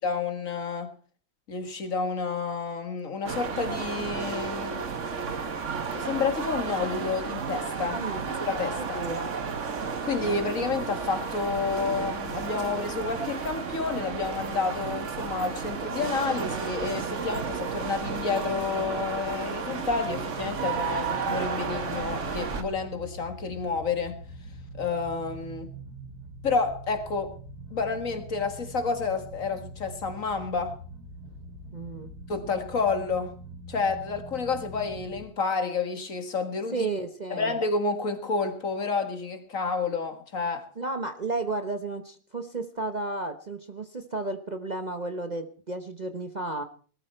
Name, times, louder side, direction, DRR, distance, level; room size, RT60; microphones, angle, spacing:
voice 1, 0.0-0.9 1.5-4.8 5.9-8.0 8.4-9.0 10.0-24.2 24.7-25.7 26.4-27.3 27.7-30.8 32.3-33.4 33.7-36.9 37.3-40.6, left 4 dB, 60° left, 2.2 m, -30 dB
sound 1, 3.2-22.6, right 5 dB, 50° right, 1.6 m, -32 dB
voice 2, 7.9-8.3 8.8-9.3 31.7-32.1 36.7-37.6 40.8-46.6, right 3 dB, 30° right, 1.0 m, -33 dB
sound 2, 20.0-35.2, right 2 dB, 85° right, 8.1 m, -43 dB
19.5 x 13.0 x 4.4 m
omnidirectional pair, 1.6 m